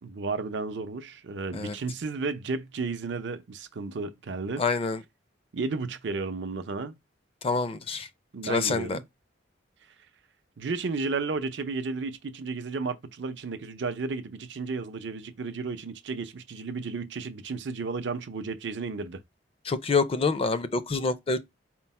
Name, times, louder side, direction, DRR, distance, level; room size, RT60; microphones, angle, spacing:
voice 1, 0.0-4.7 5.5-6.9 8.3-9.0 10.6-19.2, right 4 dB, 65° right, 0.5 m, -33 dB
voice 2, 4.6-5.0 7.4-8.1 8.4-9.0 19.7-21.4, left 4 dB, 30° left, 0.4 m, -26 dB
4.5 x 2.0 x 4.1 m
head